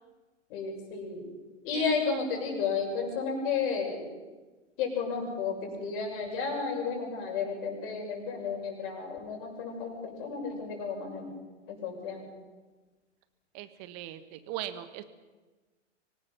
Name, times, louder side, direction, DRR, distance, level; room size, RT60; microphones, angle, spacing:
voice 1, 0.5-1.3 1.6-4.0 4.8-11.3 11.7-12.3, left 5 dB, 45° left, 1 dB, 6.8 m, -32 dB
voice 2, 1.7-2.2 13.5-15.0, right 13 dB, 40° right, 11 dB, 1.7 m, -39 dB
25.0 x 18.5 x 5.8 m, 1.2 s
figure-of-eight pair, 110°, 37 cm